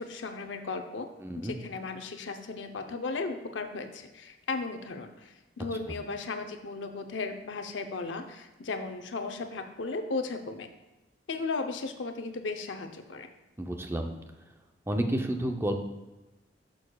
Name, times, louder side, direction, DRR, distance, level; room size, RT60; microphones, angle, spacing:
voice 1, 0.0-1.1 1.4-10.7 11.3-13.3, left 3 dB, 85° left, 6 dB, 0.7 m, -36 dB
voice 2, 1.2-1.6 13.6-14.1 14.9-15.7, right 1 dB, 15° right, 4 dB, 0.6 m, -30 dB
11.5 x 6.3 x 2.3 m, 1.0 s
head